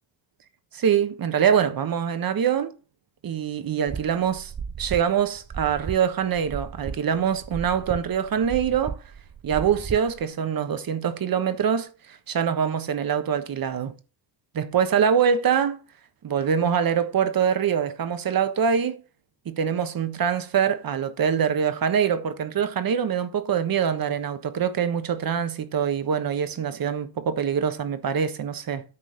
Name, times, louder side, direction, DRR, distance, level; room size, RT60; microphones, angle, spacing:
voice 1, 0.7-2.7 3.2-4.5 4.8-9.0 9.4-13.9 14.5-15.8 16.2-19.0 19.4-28.8, right 7 dB, 50° right, 1.3 m, -24 dB
sound 1, 3.9-10.2, right 6 dB, 20° right, 0.5 m, -35 dB
9.9 x 3.9 x 6.5 m
cardioid pair, 100°, 45 cm